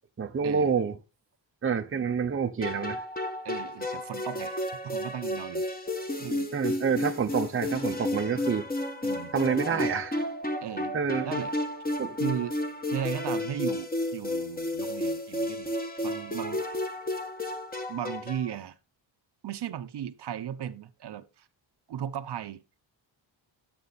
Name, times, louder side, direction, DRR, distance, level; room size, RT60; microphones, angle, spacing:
voice 1, 0.2-1.0 1.6-3.0 6.5-8.7 9.3-10.2 10.9-11.3 12.0-12.2, right 6 dB, 30° right, 0.9 m, -28 dB
sound 1, 2.6-18.5, left 1 dB, 20° left, 1.6 m, -32 dB
voice 2, 3.4-5.6 6.2-6.5 9.0-9.3 10.6-11.0 11.2-11.5 12.2-12.6 12.9-16.6 17.9-18.8 19.4-21.5 21.9-22.6, right 9 dB, 60° right, 0.9 m, -36 dB
11.5 x 7.9 x 4.1 m
wide cardioid pair, 150°, 45 cm